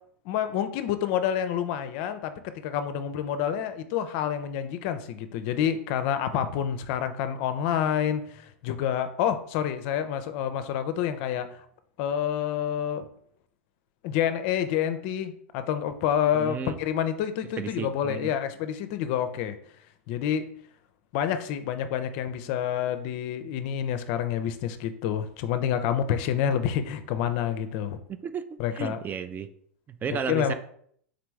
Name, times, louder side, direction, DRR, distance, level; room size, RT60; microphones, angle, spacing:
voice 1, 0.3-11.6 12.0-13.1 14.0-19.6 20.1-20.5 21.1-28.0 28.6-29.0 30.1-30.5, left 9 dB, 50° left, 10 dB, 0.5 m, -28 dB
voice 2, 16.3-16.8 17.6-18.3 28.1-29.5 29.9-30.5, right 7 dB, 25° right, 10 dB, 0.3 m, -33 dB
3.9 x 3.3 x 3.1 m, 0.63 s
hypercardioid pair, 95°, 8 cm